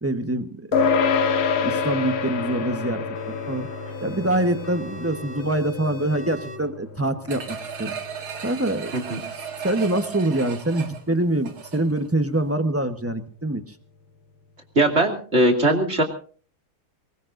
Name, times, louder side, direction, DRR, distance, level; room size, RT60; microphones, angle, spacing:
voice 1, 0.0-1.0 1.6-3.0 3.5-3.7 4.0-8.0 8.4-8.9 9.6-13.7, right 1 dB, 15° right, 8 dB, 0.6 m, -25 dB
sound 1, 0.7-10.4, left 5 dB, 80° left, 2.3 m, -28 dB
sound 2, 3.1-6.6, left 3 dB, 50° left, 4.3 m, -40 dB
sound 3, 7.3-12.1 12.5-12.6, right 7 dB, 75° right, 2.9 m, -35 dB
voice 2, 14.7-16.0, right 1 dB, 30° right, 4 dB, 2.9 m, -20 dB
23.0 x 20.5 x 2.6 m, 0.42 s
omnidirectional pair, 2.3 m